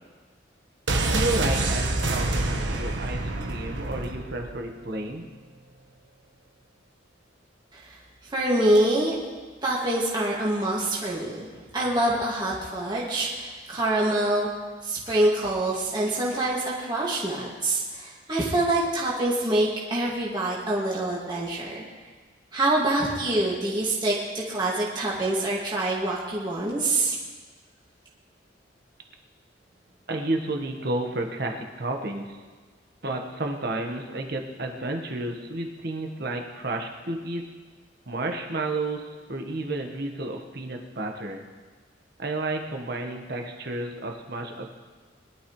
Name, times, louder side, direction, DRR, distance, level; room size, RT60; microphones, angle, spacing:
sound 1, 0.9-4.6 4.9-5.0, right 2 dB, 85° right, 1.3 m, -27 dB
voice 1, 1.1-5.3 30.1-32.4 33.0-37.4 38.1-41.4 42.2-44.7, right 2 dB, 60° right, 3 dB, 1.4 m, -31 dB
voice 2, 8.3-9.1 9.6-11.5 11.7-14.5 14.8-21.8 22.5-27.2, right 1 dB, 25° right, -6 dB, 2.2 m, -25 dB
22.5 x 12.0 x 3.2 m, 1.4 s
head